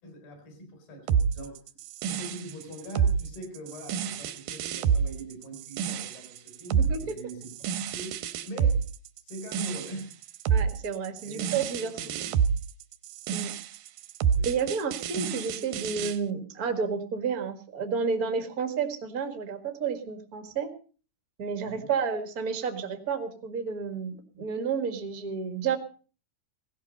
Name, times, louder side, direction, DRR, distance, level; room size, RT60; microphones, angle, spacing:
voice 1, 0.0-1.6 2.0-8.9 9.2-10.3 11.2-12.4 14.3-14.5 21.6-21.9, right 1 dB, 65° left, 5 dB, 6.9 m, -42 dB
sound 1, 1.1-16.2, right 7 dB, 75° right, 2.3 m, -28 dB
voice 2, 10.5-11.9 12.2-12.3 13.3-13.5 14.4-20.7 21.4-25.8, right 6 dB, 55° right, 7 dB, 0.9 m, -31 dB
17.5 x 13.5 x 5.4 m, 0.39 s
omnidirectional pair, 4.8 m